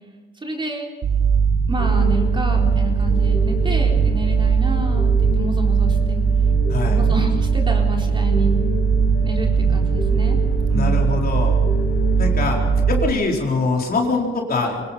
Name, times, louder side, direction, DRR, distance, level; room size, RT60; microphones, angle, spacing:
voice 1, 0.4-0.9 1.7-6.2 6.8-8.6 9.2-10.4 10.7-11.1, right 1 dB, 25° right, 0 dB, 4.1 m, -29 dB
sound 1, 1.0-13.1, right 6 dB, 55° right, 1.7 m, -19 dB
sound 2, 1.8-12.8, left 4 dB, 85° left, 6.3 m, -32 dB
voice 2, 10.7-11.6 12.2-12.6 12.9-14.9, left 3 dB, 50° left, 0 dB, 4.2 m, -23 dB
24.5 x 19.0 x 5.7 m, 1.3 s
cardioid pair, 90°, 20 cm